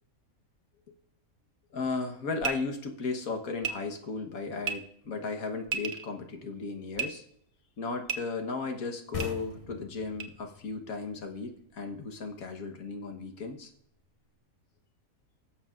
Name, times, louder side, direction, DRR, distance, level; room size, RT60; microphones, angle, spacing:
voice 1, 1.7-7.2 7.8-13.7, left 4 dB, 80° left, 5 dB, 1.7 m, -35 dB
sound 1, 2.4-2.5 3.6-3.7 4.6-4.7 5.6-6.1 6.9-7.1 8.1-8.2 9.2-9.3 10.2-10.3, right 6 dB, 65° right, 1.1 m, -31 dB
sound 2, 9.1-12.5, left 5 dB, 30° left, 0.8 m, -42 dB
17.5 x 7.4 x 2.5 m, 0.71 s
omnidirectional pair, 1.5 m